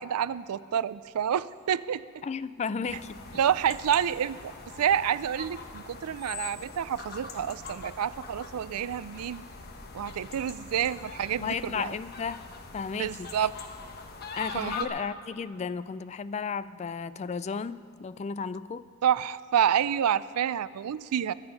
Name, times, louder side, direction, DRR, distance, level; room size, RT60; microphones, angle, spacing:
voice 1, 0.0-2.0 3.3-4.5 4.8-9.4 9.9-12.0 12.9-13.5 14.5-14.7 19.0-21.3, right 9 dB, 90° right, 17 dB, 0.4 m, -28 dB
voice 2, 2.2-3.2 11.4-12.4 12.7-13.5 14.4-18.8, left 5 dB, 30° left, 15 dB, 0.3 m, -34 dB
sound 1, 2.8-14.8, left 4 dB, 45° left, 1.1 m, -42 dB
22.0 x 8.9 x 5.4 m, 2.4 s
head